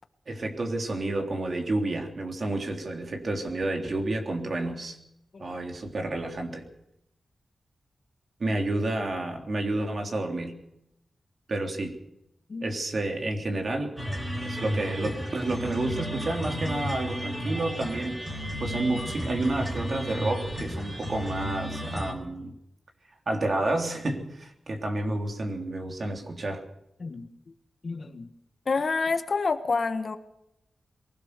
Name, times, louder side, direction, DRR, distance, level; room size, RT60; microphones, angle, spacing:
voice 1, 0.3-5.0 5.4-6.7 8.4-10.5 11.5-12.0 12.6-14.0 14.4-22.5 23.3-26.6, right 2 dB, 50° right, 3 dB, 3.4 m, -30 dB
sound 1, 14.0-22.1, equal, 15° right, 3.6 m, -33 dB
voice 2, 27.8-28.3 28.6-30.2, left 4 dB, 50° left, 9 dB, 1.5 m, -28 dB
23.0 x 17.0 x 6.8 m, 0.80 s
wide cardioid pair, 130°, 0 cm